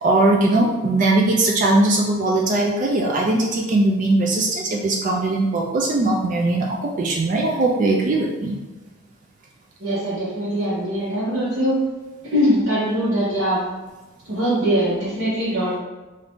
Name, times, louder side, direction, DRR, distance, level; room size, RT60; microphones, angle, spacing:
voice 1, 0.0-8.6, right 2 dB, 40° right, -1 dB, 0.3 m, -20 dB
voice 2, 9.8-11.8 12.3-13.6 14.2-15.8, equal, 80° right, -11 dB, 1.0 m, -22 dB
2.7 x 2.5 x 3.4 m, 1.2 s
head